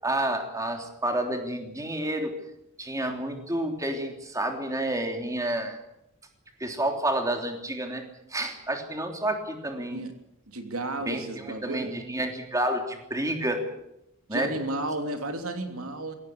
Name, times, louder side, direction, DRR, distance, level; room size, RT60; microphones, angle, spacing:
voice 1, 0.0-2.3 2.8-5.8 6.6-8.0 8.3-10.0 11.1-13.6 14.3-14.6, right 1 dB, 15° right, 4 dB, 3.2 m, -29 dB
voice 2, 10.5-11.9 14.3-16.1, right 2 dB, 75° right, 6 dB, 3.0 m, -33 dB
21.5 x 17.5 x 8.5 m, 0.83 s
head